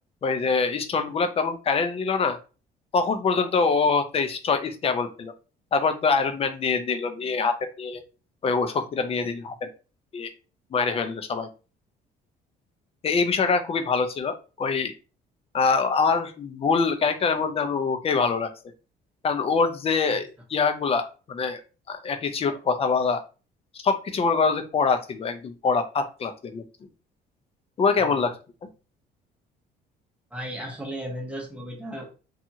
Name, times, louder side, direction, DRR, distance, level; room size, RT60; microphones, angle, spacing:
voice 1, 0.2-2.4 2.9-5.3 5.7-8.0 8.4-9.7 10.1-10.3 10.7-11.5 13.0-14.9 15.5-18.5 19.2-21.6 21.9-23.2 23.8-26.6 27.8-28.4 28.6-28.7, left 4 dB, 35° left, 8 dB, 0.5 m, -24 dB
voice 2, 30.3-32.1, equal, 5° right, 0 dB, 1.0 m, -35 dB
2.7 x 2.4 x 2.7 m, 0.33 s
cardioid pair, 110°, 17 cm